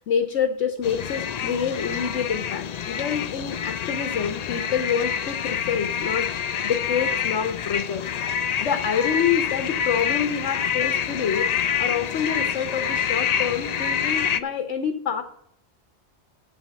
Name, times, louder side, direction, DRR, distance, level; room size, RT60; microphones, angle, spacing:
voice 1, 0.0-6.3 6.6-8.0 8.4-11.5 11.8-15.2, left 7 dB, 80° left, 7 dB, 1.2 m, -27 dB
sound 1, 0.8-14.4, left 8 dB, 60° left, 0.4 m, -27 dB
7.2 x 7.1 x 7.4 m, 0.68 s
omnidirectional pair, 1.2 m